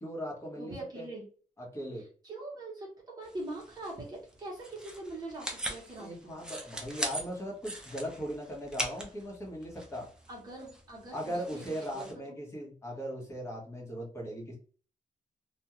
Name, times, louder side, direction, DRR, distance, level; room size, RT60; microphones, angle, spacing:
voice 1, 0.0-1.1 1.6-2.0 6.0-10.1 11.1-14.6, equal, 20° left, -2 dB, 1.0 m, -39 dB
voice 2, 0.5-1.2 2.2-6.4 10.3-11.6 11.9-12.4, right 2 dB, 30° right, -4 dB, 0.9 m, -43 dB
sound 1, 3.2-12.1, right 1 dB, 5° right, 0.5 m, -41 dB
2.4 x 2.2 x 2.9 m, 0.41 s
wide cardioid pair, 160°, 14 cm